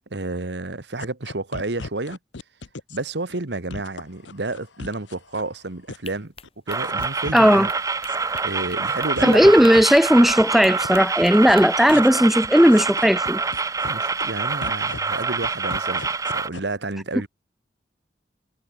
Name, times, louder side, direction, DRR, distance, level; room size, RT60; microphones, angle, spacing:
voice 1, 0.1-2.2 2.9-6.3 6.7-7.7 8.4-9.5 13.9-17.3, right 2 dB, 70° right, 1.5 m, -30 dB
sound 1, 1.0-3.0 3.3-3.4 3.7-5.5 5.9-6.2 6.4-7.6 7.9-8.7 9.0-9.8 10.2-10.9 11.2-11.6 11.9-12.1 12.4-13.9 14.2-14.3 14.6-16.6, left 3 dB, 85° left, 1.0 m, -37 dB
sound 2, 6.0-12.0, left 6 dB, 30° left, 6.4 m, -44 dB
sound 3, 6.7-16.5, right 4 dB, 20° right, 0.8 m, -26 dB
voice 2, 7.3-7.7 9.2-13.4, equal, ahead, 0.4 m, -15 dB
head